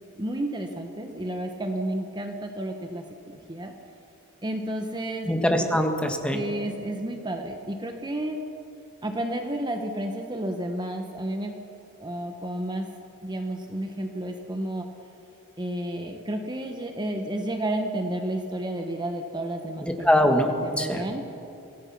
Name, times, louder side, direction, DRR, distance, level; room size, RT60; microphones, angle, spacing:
voice 1, 0.2-3.7 4.4-5.3 5.6-5.7 6.3-8.4 9.0-11.5 12.0-12.9 13.2-14.9 15.6-20.1 20.6-21.2, right 1 dB, 20° right, 4 dB, 1.1 m, -31 dB
voice 2, 5.3-6.4 19.8-21.0, equal, 5° left, 4 dB, 1.6 m, -23 dB
25.5 x 17.5 x 6.0 m, 2.7 s
head